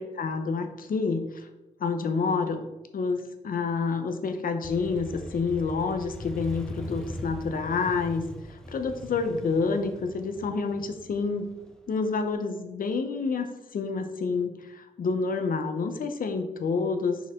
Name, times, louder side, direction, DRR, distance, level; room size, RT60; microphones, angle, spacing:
voice 1, 0.0-1.4 1.8-2.6 2.9-8.2 8.7-11.5 11.9-13.5 13.7-17.2, left 4 dB, 80° left, 7 dB, 0.8 m, -28 dB
Motorcycle, 4.6-12.3, equal, 5° left, 0.8 m, -41 dB
6.5 x 5.3 x 3.6 m, 1.0 s
wide cardioid pair, 145°, 14 cm